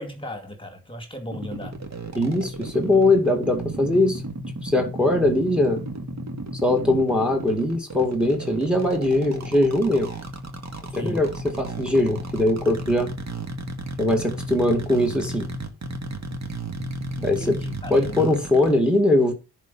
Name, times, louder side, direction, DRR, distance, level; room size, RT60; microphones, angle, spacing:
voice 1, 0.0-1.7 10.9-11.2 17.2-18.4, left 1 dB, 15° left, 2.2 m, -36 dB
sound 1, 1.3-18.8, right 2 dB, 45° right, 2.1 m, -33 dB
voice 2, 2.1-4.2 4.6-5.8 6.6-10.1 10.9-13.1 14.0-15.5 17.2-17.6 17.9-19.3, left 1 dB, ahead, 2.2 m, -21 dB
10.5 x 4.6 x 5.6 m
wide cardioid pair, 115°, 37 cm